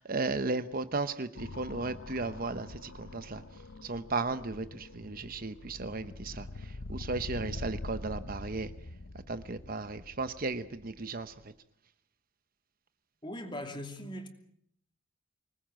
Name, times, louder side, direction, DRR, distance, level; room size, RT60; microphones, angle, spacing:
voice 1, 0.0-3.4 3.8-8.7 9.3-11.3, right 3 dB, 45° right, 0.9 m, -35 dB
sound 1, 1.4-11.4, left 2 dB, 65° left, 1.0 m, -44 dB
voice 2, 13.2-14.3, left 1 dB, 25° left, 2.8 m, -40 dB
25.5 x 19.5 x 7.6 m
head